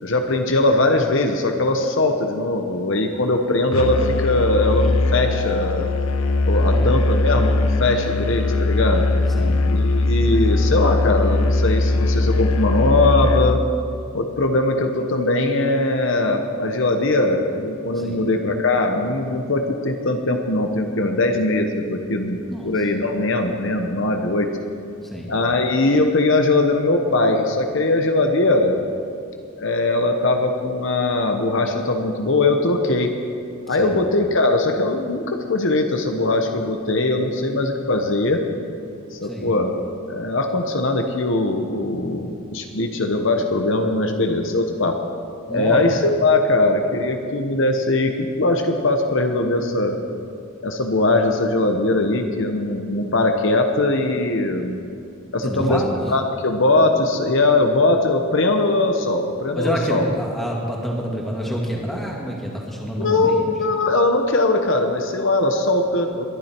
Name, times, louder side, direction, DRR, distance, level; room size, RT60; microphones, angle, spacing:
voice 1, 0.0-5.9 6.5-9.0 9.7-13.6 14.1-24.5 25.3-28.9 29.6-33.1 33.7-38.4 39.1-39.7 40.1-45.0 45.5-50.0 50.6-54.8 55.3-55.8 56.1-60.1 63.0-66.3, left 2 dB, 60° left, 4 dB, 1.1 m, -20 dB
Musical instrument, 3.7-13.6, left 2 dB, 80° left, 0.7 m, -20 dB
voice 2, 9.3-9.7 17.9-18.2 22.5-22.8 25.0-25.3 33.8-34.0 39.2-39.5 45.5-45.8 55.4-56.0 59.5-63.5, equal, ahead, -3 dB, 2.1 m, -28 dB
22.0 x 11.0 x 4.5 m, 2.6 s
head